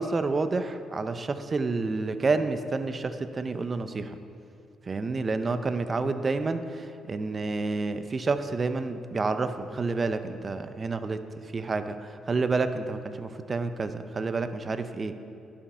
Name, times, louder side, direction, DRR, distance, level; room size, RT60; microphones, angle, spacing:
voice 1, 0.0-4.2 4.9-11.2 11.5-15.1, right 3 dB, 35° right, 10 dB, 0.6 m, -29 dB
11.5 x 7.2 x 5.6 m, 2.7 s
cardioid pair, 90°, 0 cm